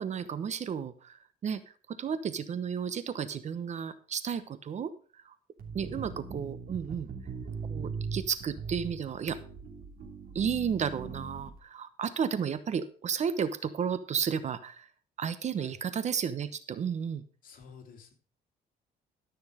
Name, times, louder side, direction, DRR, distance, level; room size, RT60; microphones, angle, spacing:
voice 1, 0.0-1.6 1.9-4.9 5.2-5.3 5.7-7.1 7.7-9.4 10.3-14.9 15.2-17.2, right 7 dB, 45° right, 13 dB, 0.9 m, -33 dB
sound 1, 5.6-11.6, right 5 dB, 60° right, 3.0 m, -40 dB
voice 2, 5.8-6.2 15.6-15.7 17.4-18.1, left 4 dB, 55° left, 4 dB, 2.8 m, -50 dB
13.0 x 6.3 x 4.9 m, 0.41 s
cardioid pair, 110°, 17 cm